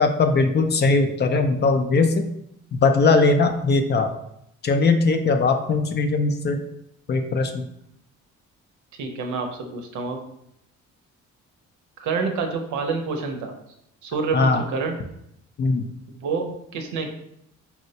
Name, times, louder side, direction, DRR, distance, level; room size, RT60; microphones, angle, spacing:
voice 1, 0.0-2.3 2.7-4.1 4.6-6.6 7.1-7.6 14.3-14.6 15.6-15.9, left 3 dB, 35° left, 6 dB, 0.4 m, -20 dB
voice 2, 8.9-10.2 12.0-13.5 14.0-15.0 16.1-17.1, right 4 dB, 75° right, 4 dB, 0.6 m, -28 dB
4.2 x 2.1 x 2.7 m, 0.77 s
cardioid pair, 90°, 30 cm